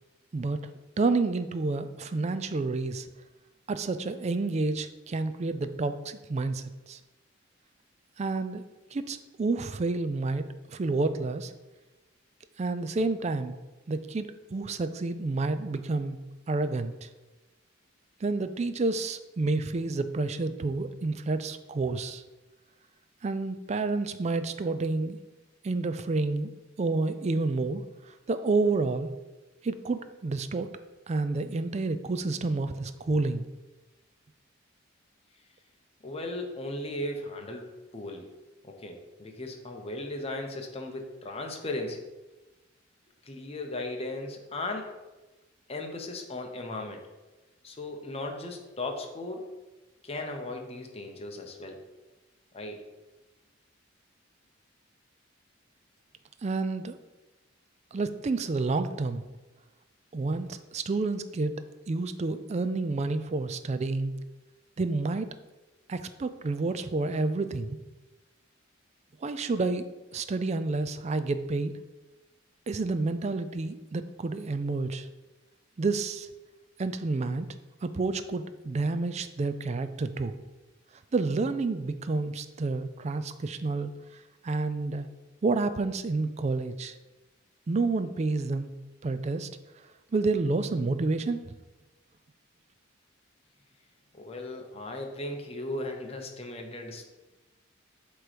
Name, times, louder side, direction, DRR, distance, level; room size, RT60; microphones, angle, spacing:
voice 1, 1.0-3.1 3.7-7.0 8.2-8.6 8.9-11.5 12.6-13.5 13.9-16.2 16.5-17.1 18.2-22.2 23.2-25.2 25.6-26.5 26.8-29.1 29.6-30.7 31.1-33.5 56.4-57.0 57.9-59.2 60.1-61.5 61.9-64.2 64.8-65.3 65.9-67.8 69.2-69.9 70.1-71.7 72.7-75.1 75.8-76.3 76.8-77.5 77.8-80.3 81.1-85.1 85.4-86.9 87.7-88.7 89.0-89.5 90.1-91.5, right 3 dB, 35° right, 11 dB, 0.4 m, -29 dB
voice 2, 36.0-38.3 38.6-42.1 43.2-44.9 45.7-47.0 47.6-49.5 50.0-51.8 52.5-52.8 94.1-97.0, left 2 dB, 30° left, 3 dB, 0.8 m, -37 dB
7.9 x 3.1 x 5.0 m, 1.1 s
head